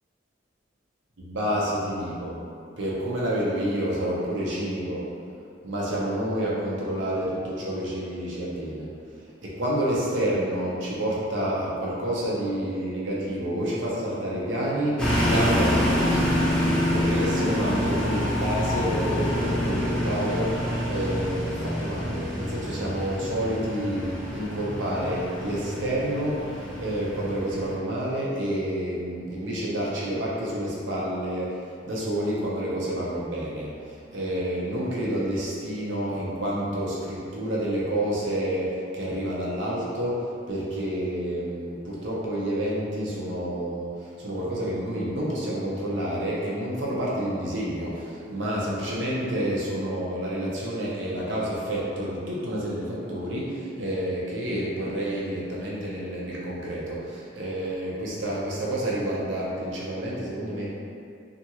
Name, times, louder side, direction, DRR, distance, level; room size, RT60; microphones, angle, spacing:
voice 1, 1.2-2.4 2.8-5.1 5.6-8.9 9.4-60.8, right 1 dB, 85° right, -6 dB, 0.6 m, -29 dB
sound 1, 15.0-27.7, left 1 dB, 5° left, 0.5 m, -27 dB
2.5 x 2.3 x 2.8 m, 2.3 s
head